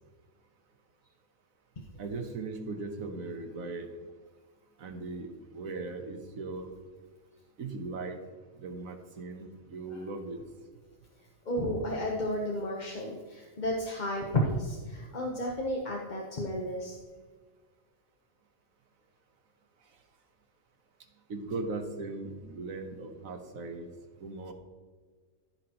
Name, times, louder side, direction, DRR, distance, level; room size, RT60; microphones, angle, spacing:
voice 1, 2.0-3.9 4.8-5.3 5.5-6.7 7.6-8.2 8.6-10.4 21.3-23.9 24.2-24.5, right 3 dB, 80° right, 5 dB, 1.4 m, -38 dB
voice 2, 11.5-17.0, left 1 dB, 35° left, -1 dB, 1.0 m, -32 dB
14.5 x 5.9 x 2.9 m, 1.5 s
omnidirectional pair, 1.4 m